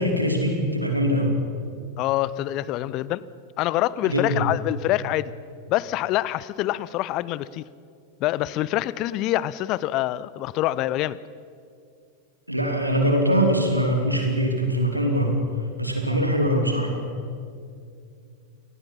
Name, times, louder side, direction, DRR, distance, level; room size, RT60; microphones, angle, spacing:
voice 1, 0.0-1.4 4.0-4.4 12.5-15.4 15.8-17.0, equal, 85° right, 3 dB, 3.2 m, -22 dB
voice 2, 2.0-3.2 3.6-5.3 5.7-7.6 8.2-11.2, left 15 dB, 40° left, 20 dB, 0.6 m, -25 dB
28.0 x 19.5 x 5.8 m, 2.3 s
figure-of-eight pair, 90°, 0 cm